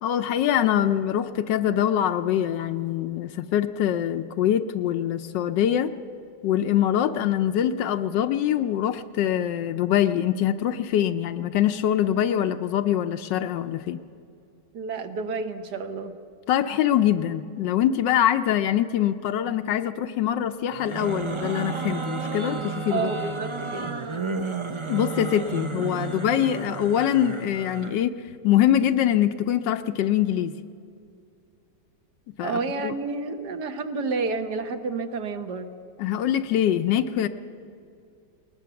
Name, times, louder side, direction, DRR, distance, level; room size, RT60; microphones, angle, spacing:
voice 1, 0.0-5.9 6.4-14.0 16.5-23.1 24.9-28.2 28.4-30.5 32.4-32.9 36.0-37.3, left 10 dB, 85° left, 7 dB, 1.4 m, -24 dB
voice 2, 14.7-16.1 22.9-23.9 32.4-35.7, right 4 dB, 70° right, 7 dB, 1.7 m, -30 dB
sound 1, 20.7-28.0, right 4 dB, 35° right, 0.4 m, -32 dB
20.0 x 19.5 x 7.0 m, 2.5 s
omnidirectional pair, 1.9 m